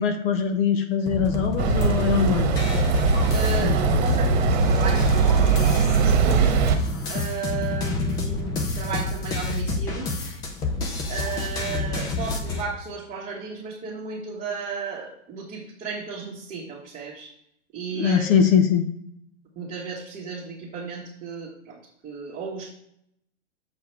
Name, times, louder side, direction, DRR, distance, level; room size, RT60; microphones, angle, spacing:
voice 1, 0.0-2.5 3.6-4.0 17.9-18.9, left 7 dB, 50° left, 7 dB, 0.9 m, -22 dB
sound 1, 1.1-12.6, left 2 dB, 10° left, 0.3 m, -29 dB
sound 2, 1.6-6.8, right 4 dB, 55° right, 1.3 m, -20 dB
voice 2, 3.3-6.6 7.1-10.1 11.1-17.3 17.7-18.3 19.5-22.7, right 5 dB, 20° right, -6 dB, 1.5 m, -34 dB
7.1 x 4.7 x 4.5 m, 0.73 s
hypercardioid pair, 130°, 39 cm